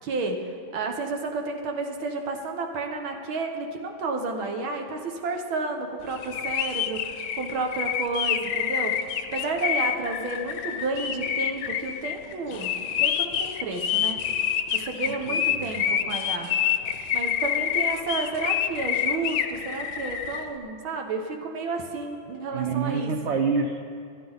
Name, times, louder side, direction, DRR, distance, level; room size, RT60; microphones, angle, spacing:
voice 1, 0.0-12.7 13.0-14.2 14.7-16.5 17.1-23.4, right 3 dB, 85° right, 3 dB, 2.0 m, -31 dB
sound 1, 6.2-20.4, left 9 dB, 85° left, 1.5 m, -27 dB
voice 2, 15.2-15.7 22.5-23.8, right 5 dB, 60° right, 2 dB, 0.7 m, -27 dB
26.5 x 11.5 x 4.0 m, 2.4 s
omnidirectional pair, 2.2 m